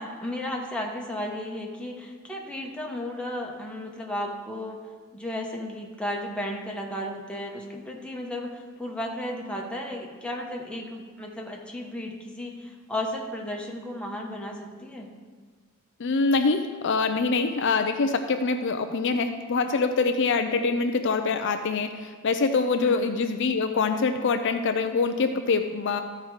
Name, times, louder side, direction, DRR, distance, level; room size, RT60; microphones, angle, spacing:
voice 1, 0.0-4.8 5.1-15.1 22.8-23.2, left 1 dB, 5° left, -1 dB, 1.2 m, -34 dB
voice 2, 16.0-26.0, left 4 dB, 60° left, 7 dB, 0.5 m, -24 dB
14.0 x 4.7 x 4.8 m, 1.5 s
head